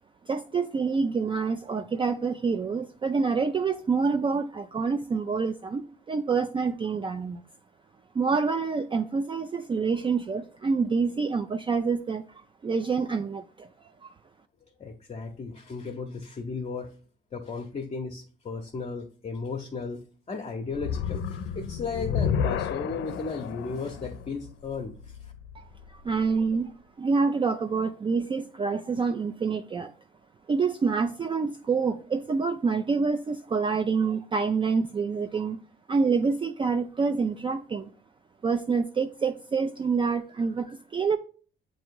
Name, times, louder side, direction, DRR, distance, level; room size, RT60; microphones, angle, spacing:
voice 1, 0.3-7.4 8.1-13.7 14.0-14.1 25.6-26.7 27.0-29.9 30.5-35.6 35.9-37.9 38.4-41.2, right 5 dB, 25° right, 8 dB, 0.4 m, -27 dB
voice 2, 14.8-16.9 17.3-25.3, left 4 dB, 35° left, 1 dB, 0.7 m, -35 dB
sound 1, 20.7-26.0, left 7 dB, 80° left, 0.5 m, -31 dB
7.5 x 2.7 x 4.6 m, 0.41 s
cardioid pair, 90°, 20 cm